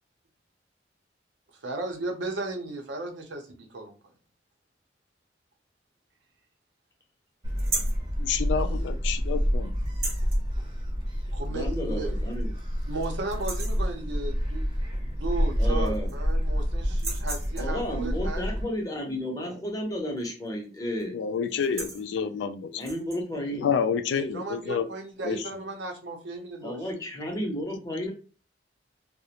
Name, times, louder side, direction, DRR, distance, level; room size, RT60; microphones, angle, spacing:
voice 1, 1.6-4.0 11.3-12.1 12.9-14.7 14.9-18.4 24.1-26.8, right 2 dB, 90° right, 3 dB, 0.6 m, -35 dB
Gull seagull, 7.4-18.6, equal, 30° right, 0.6 m, -28 dB
sound 1, 7.6-8.0 9.9-10.4 11.8-11.9 12.3-12.4 12.8-13.1 13.3-13.9 15.2-15.3 15.6-16.3 16.9-17.8 20.2-20.5 20.8-21.0 21.5-22.1 22.7-23.2, right 3 dB, 55° right, 0.9 m, -35 dB
voice 2, 8.2-9.7 21.1-22.8 23.6-24.9 25.2-25.4, left 6 dB, 90° left, 9 dB, 0.3 m, -28 dB
voice 3, 11.5-12.5 15.6-16.1 17.6-21.1 22.8-23.7 26.6-28.1, equal, 20° left, 0 dB, 0.6 m, -32 dB
2.4 x 2.0 x 2.8 m, 0.35 s
head